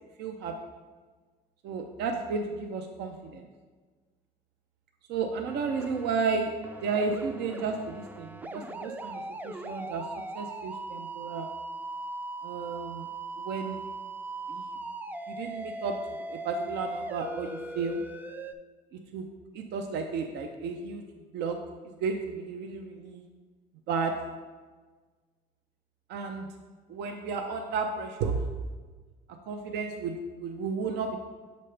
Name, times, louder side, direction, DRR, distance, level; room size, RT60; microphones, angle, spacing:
voice 1, 0.2-0.6 1.6-3.5 5.1-6.5 6.8-10.0 10.3-11.5 12.4-13.1 13.4-13.8 14.5-14.8 15.3-16.0 16.3-18.0 18.9-19.2 19.5-21.0 21.3-21.6 22.0-23.2 23.9-24.1 26.1-26.5 26.9-28.5 29.5-31.2, right 4 dB, 80° right, 4 dB, 0.6 m, -33 dB
sound 1, 5.5-6.2 6.6-18.5, right 2 dB, 10° right, 0.3 m, -39 dB
7.7 x 5.2 x 3.3 m, 1.4 s
cardioid pair, 110°, 17 cm